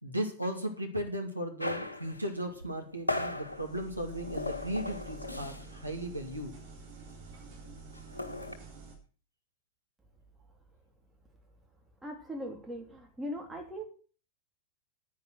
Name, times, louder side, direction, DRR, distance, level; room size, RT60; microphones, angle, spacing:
voice 1, 0.0-6.5, equal, 90° right, 2 dB, 2.4 m, -36 dB
sound 1, 1.6-5.9 6.1-6.4 6.6-8.6, left 2 dB, 80° left, 1.5 m, -38 dB
sound 2, 3.3-8.9, right 4 dB, 50° right, 5.0 m, -49 dB
voice 2, 12.0-13.8, equal, 10° right, 1 dB, 3.1 m, -39 dB
10.0 x 9.6 x 6.4 m, 0.39 s
figure-of-eight pair, 90°, 0 cm